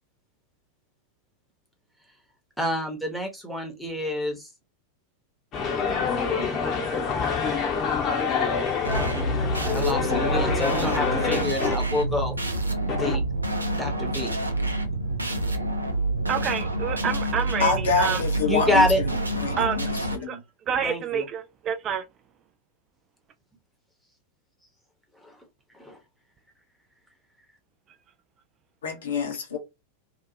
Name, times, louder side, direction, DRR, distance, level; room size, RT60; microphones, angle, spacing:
voice 1, 2.6-4.5 9.3-12.3 12.9-13.2 13.7-14.3 18.4-19.0 20.8-21.2 25.2-25.4 25.7-26.0, left 1 dB, ahead, 1.0 m, -27 dB
sound 1, 5.5-11.7 12.9-13.1, left 5 dB, 35° left, 0.9 m, -26 dB
sound 2, 8.8-20.2, right 1 dB, 80° right, 0.5 m, -28 dB
voice 2, 16.3-18.2 19.6-19.8 20.3-20.4 20.7-22.0, right 8 dB, 30° right, 0.3 m, -28 dB
voice 3, 17.6-18.9 19.4-20.4 28.8-29.6, left 4 dB, 65° left, 0.9 m, -26 dB
2.7 x 2.4 x 2.7 m
figure-of-eight pair, 90°, 0 cm